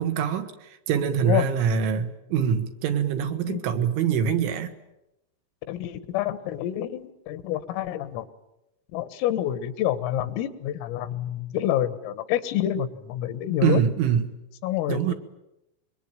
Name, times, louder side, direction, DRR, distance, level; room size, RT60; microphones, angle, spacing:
voice 1, 0.0-4.7 13.6-14.4 14.9-15.1, right 7 dB, 70° right, 7 dB, 3.9 m, -24 dB
voice 2, 5.7-8.3 8.9-13.8 14.6-15.1, left 11 dB, 85° left, 13 dB, 4.0 m, -28 dB
26.0 x 23.0 x 9.1 m, 0.87 s
omnidirectional pair, 5.9 m